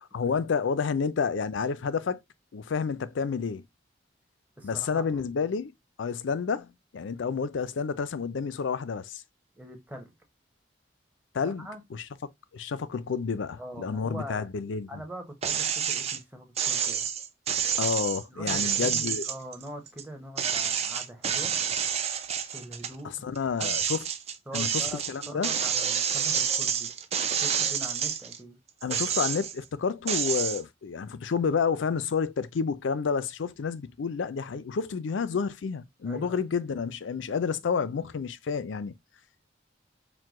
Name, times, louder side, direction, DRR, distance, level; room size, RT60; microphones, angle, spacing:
voice 1, 0.0-2.2 2.5-3.6 4.6-5.7 6.0-9.2 11.3-12.0 12.5-14.9 17.8-19.2 23.0-24.0 24.5-24.7 25.1-25.5 28.8-38.9, left 5 dB, 85° left, 0.4 m, -30 dB
voice 2, 4.6-5.0 9.6-10.1 11.4-11.8 13.6-14.5 14.9-17.1 18.3-21.6 22.5-23.7 24.5-26.9 27.3-28.6 36.0-36.5, right 1 dB, 10° right, 0.9 m, -42 dB
sound 1, 15.4-16.2 16.6-20.0 20.4-23.0 23.4-28.4 28.8-29.6 30.1-30.6, right 8 dB, 35° right, 0.5 m, -28 dB
4.6 x 2.2 x 3.6 m
head